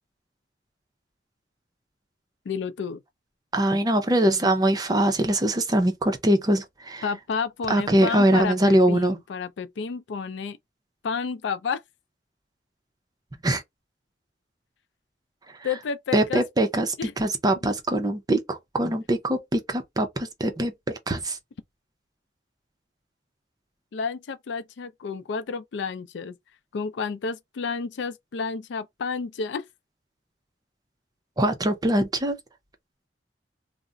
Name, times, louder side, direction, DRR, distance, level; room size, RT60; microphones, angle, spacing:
voice 1, 2.5-3.0 7.0-10.6 11.0-11.8 15.6-16.4 17.0-17.1 23.9-26.4 26.7-29.7, left 5 dB, 80° left, 0.4 m, -31 dB
voice 2, 3.5-7.1 7.7-9.2 13.4-13.6 16.1-21.4 31.4-32.4, right 1 dB, 20° right, 0.5 m, -23 dB
2.4 x 2.0 x 3.7 m
head